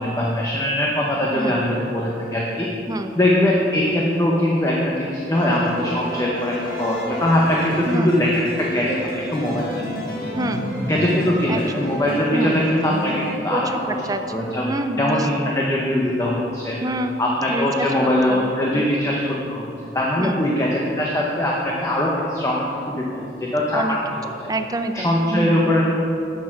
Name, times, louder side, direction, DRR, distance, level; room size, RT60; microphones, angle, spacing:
voice 1, 0.0-2.7 3.2-9.0 9.3-10.0 10.9-13.9 14.3-14.7 15.0-16.8 17.2-19.7 19.9-24.3 24.9-25.9, left 1 dB, 15° left, -4 dB, 0.8 m, -21 dB
sound 1, 5.3-13.4, left 1 dB, 50° left, 1.8 m, -31 dB
voice 2, 10.4-10.7 11.5-11.9 12.3-12.6 13.5-14.2 14.7-15.3 16.8-17.2 17.5-17.9 18.3-18.9 20.2-20.4 23.7-24.0 24.5-25.6, right 1 dB, 20° right, 7 dB, 0.4 m, -27 dB
8.1 x 6.6 x 5.8 m, 2.7 s
head